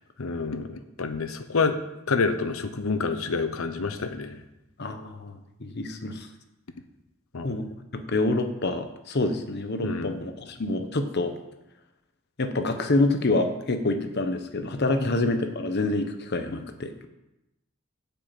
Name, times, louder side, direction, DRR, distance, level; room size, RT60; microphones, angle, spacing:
voice 1, 0.2-1.8 2.1-4.4 7.3-7.6 9.8-10.2 15.0-15.1, left 4 dB, 75° left, 9 dB, 0.8 m, -28 dB
voice 2, 4.8-5.3 5.6-6.3 7.4-7.7 7.9-11.3 12.4-16.9, left 2 dB, 50° left, 7 dB, 1.0 m, -27 dB
8.2 x 5.6 x 7.7 m, 0.92 s
head